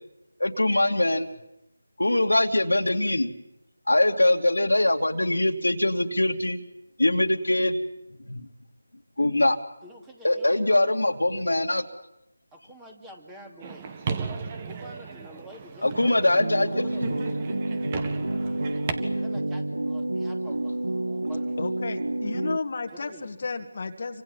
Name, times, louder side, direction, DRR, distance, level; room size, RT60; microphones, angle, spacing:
voice 1, 0.4-1.3 2.0-3.3 3.9-6.6 7.0-7.8 8.2-8.4 9.2-9.6 10.2-11.8 15.8-16.9, left 1 dB, 85° left, 4 dB, 2.6 m, -22 dB
voice 2, 9.8-11.0 12.5-13.8 14.6-17.4 18.5-21.6 22.9-23.3, equal, 10° right, 2 dB, 2.8 m, -47 dB
sound 1, 13.6-18.9, right 5 dB, 25° right, 1.7 m, -35 dB
sound 2, 16.4-22.6, right 1 dB, 80° right, 2.1 m, -29 dB
voice 3, 21.6-24.2, left 4 dB, 45° left, 5 dB, 1.8 m, -32 dB
29.0 x 25.5 x 7.3 m, 0.87 s
figure-of-eight pair, 165°, 0 cm